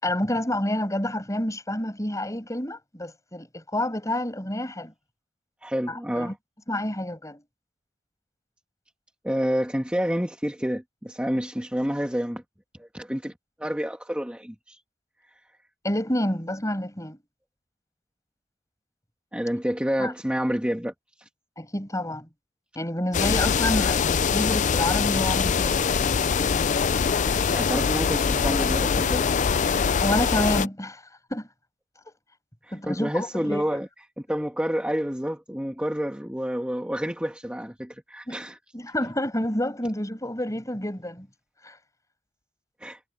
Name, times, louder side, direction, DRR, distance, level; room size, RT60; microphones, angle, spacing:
voice 1, 0.0-4.9 5.9-6.3 6.7-7.4 15.8-17.2 20.0-20.1 21.6-22.3 22.8-26.1 30.0-31.0 31.3-31.5 32.7-33.8 38.3-38.4 38.7-41.3 41.6-41.8, left 1 dB, 15° left, 7.7 m, -28 dB
voice 2, 5.6-6.3 9.2-12.4 12.8-13.3 13.6-14.8 19.3-20.9 27.5-29.3 32.6-33.9 34.3-38.6 42.8-43.0, equal, 5° right, 1.7 m, -28 dB
sound 1, 23.1-30.7, left 6 dB, 40° left, 0.4 m, -23 dB
head